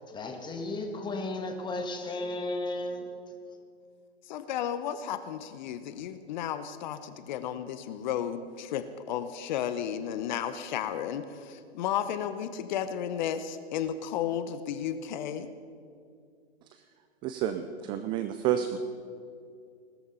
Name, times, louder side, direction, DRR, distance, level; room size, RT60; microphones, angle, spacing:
voice 1, 0.1-3.4, left 2 dB, 15° left, 5 dB, 1.7 m, -34 dB
voice 2, 4.2-15.5, left 9 dB, 45° left, 11 dB, 0.9 m, -33 dB
voice 3, 17.2-18.8, right 10 dB, 15° right, 9 dB, 0.3 m, -30 dB
19.0 x 13.5 x 5.6 m, 2.4 s
hypercardioid pair, 120°, 33 cm